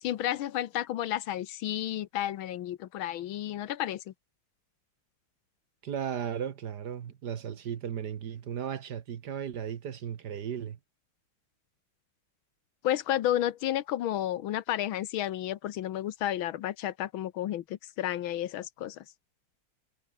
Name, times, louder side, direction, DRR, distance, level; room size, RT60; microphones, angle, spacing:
voice 1, 0.0-4.0 12.8-19.0, left 12 dB, 75° left, 1.7 m, -31 dB
voice 2, 5.8-10.8, right 8 dB, 55° right, 1.6 m, -36 dB
omnidirectional pair, 2.3 m